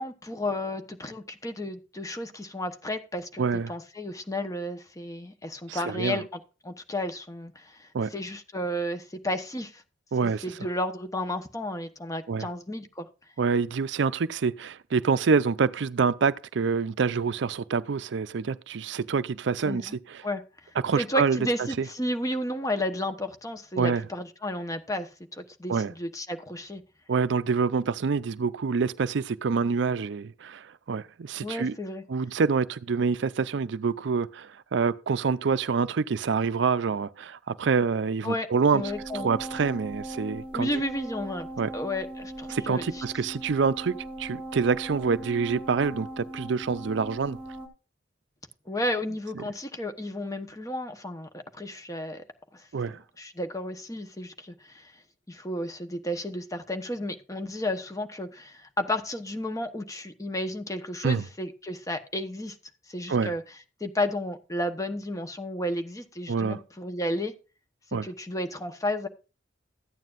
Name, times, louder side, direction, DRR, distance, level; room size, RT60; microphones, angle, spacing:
voice 1, 0.0-3.4 3.7-9.8 10.2-13.1 19.6-19.9 20.2-20.4 21.0-26.8 31.4-32.0 38.2-39.3 40.5-41.5 41.7-43.0 48.7-52.2 52.5-54.9 55.3-62.6 62.9-63.4 63.8-67.3 67.9-69.1, left 1 dB, 20° left, 1.1 m, -32 dB
voice 2, 3.4-3.7 5.7-6.2 7.9-8.1 10.1-10.4 12.3-12.5 13.4-20.2 20.8-21.4 21.8-21.9 23.8-24.0 25.7-25.9 27.1-31.8 32.1-38.8 39.1-40.7 41.6-41.7 42.5-47.4 52.7-53.0 61.0-61.3 63.1-63.3 66.3-66.6 67.9-68.1, right 5 dB, 70° right, 0.5 m, -26 dB
sound 1, 38.8-47.7, right 1 dB, 10° right, 2.6 m, -39 dB
14.0 x 9.3 x 2.5 m
head